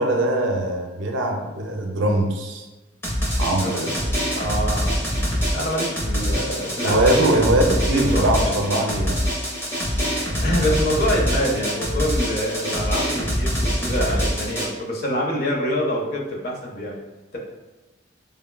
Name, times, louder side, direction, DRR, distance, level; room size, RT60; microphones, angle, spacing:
voice 1, 0.0-2.7 3.4-3.9 6.2-6.4 6.8-9.2, right 1 dB, 80° right, 2 dB, 0.5 m, -22 dB
Drum, 3.0-14.7, equal, 15° left, 0.6 m, -24 dB
voice 2, 4.3-4.9 5.5-7.1 7.9-8.5 10.3-17.0, equal, 55° left, -2 dB, 0.6 m, -26 dB
3.4 x 2.2 x 2.2 m, 1.1 s
head